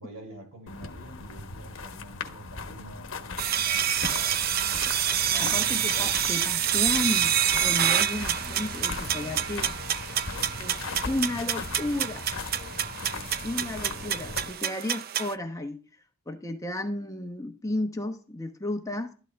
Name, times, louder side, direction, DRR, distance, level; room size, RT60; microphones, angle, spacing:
voice 1, 0.0-6.2, right 1 dB, 80° right, 2 dB, 5.9 m, -47 dB
sound 1, 0.7-14.5, left 3 dB, 65° left, 1.2 m, -38 dB
sound 2, 3.4-15.3, right 9 dB, 45° right, 0.5 m, -27 dB
voice 2, 5.4-9.7 10.6-10.8 11.0-12.2 13.4-15.8 16.3-19.1, left 1 dB, 15° left, 5 dB, 0.9 m, -33 dB
13.0 x 11.5 x 3.4 m, 0.37 s
head